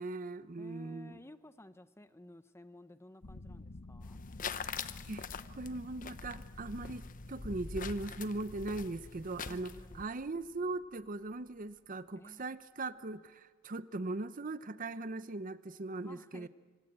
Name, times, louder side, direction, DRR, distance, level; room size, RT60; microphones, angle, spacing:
voice 1, 0.0-1.2 5.1-16.5, right 2 dB, 40° right, 14 dB, 0.7 m, -40 dB
voice 2, 0.6-4.2 9.4-10.2 12.2-12.5 16.0-16.5, left 1 dB, 10° left, 12 dB, 0.7 m, -55 dB
sound 1, 3.2-11.6, left 2 dB, 60° left, 1.0 m, -52 dB
sound 2, 4.0-10.1, left 5 dB, 40° left, 0.9 m, -44 dB
26.0 x 25.0 x 8.8 m, 1.5 s
head